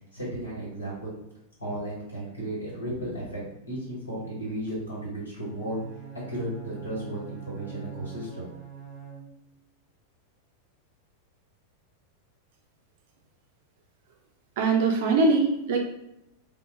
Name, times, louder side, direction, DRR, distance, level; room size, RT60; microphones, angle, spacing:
voice 1, 0.1-1.2 1.6-5.8 6.1-8.4, right 1 dB, 80° left, -6 dB, 1.1 m, -34 dB
Bowed string instrument, 5.4-9.6, right 7 dB, 15° left, 0.7 m, -43 dB
voice 2, 14.6-15.8, right 3 dB, 50° right, 2 dB, 0.5 m, -22 dB
2.1 x 2.0 x 3.2 m, 0.83 s
figure-of-eight pair, 90°, 0 cm